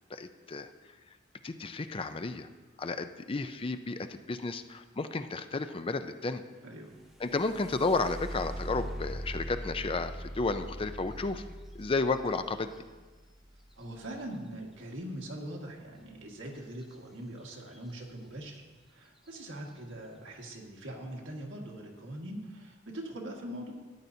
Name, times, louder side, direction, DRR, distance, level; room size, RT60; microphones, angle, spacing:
voice 1, 0.1-0.7 1.4-2.5 2.8-6.4 7.2-11.4 11.7-12.7, left 3 dB, 30° left, 9 dB, 0.5 m, -32 dB
voice 2, 6.6-7.0 13.8-18.6 18.9-23.7, right 1 dB, 75° right, -1 dB, 1.7 m, -42 dB
sound 1, 6.9-14.7 16.8-17.0 17.4-17.9 18.5-18.6 19.2-19.5, equal, ahead, 0.7 m, -42 dB
13.5 x 10.0 x 2.7 m, 1.3 s
head